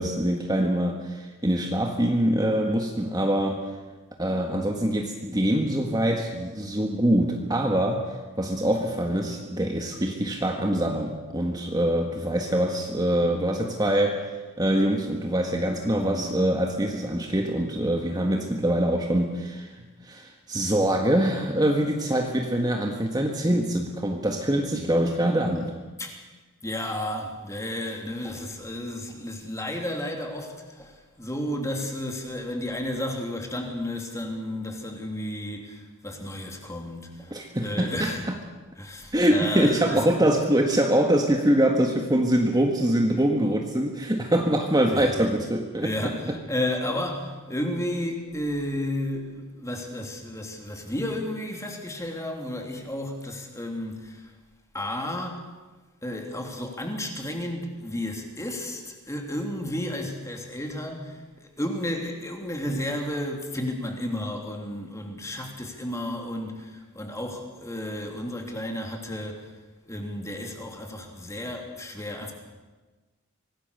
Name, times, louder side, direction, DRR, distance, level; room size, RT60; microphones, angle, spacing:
voice 1, 0.0-3.6 4.2-8.1 8.4-14.3 14.6-19.7 20.0-25.7 37.3-38.3 39.1-45.9, right 1 dB, 20° right, 2 dB, 1.7 m, -24 dB
voice 2, 15.9-16.3 24.8-25.3 26.0-26.2 26.6-38.3 38.7-40.2 44.9-45.4 45.8-54.3 54.7-55.5 56.0-69.5 69.8-72.3, left 1 dB, 15° left, 2 dB, 3.1 m, -32 dB
25.0 x 18.5 x 6.9 m, 1.2 s
head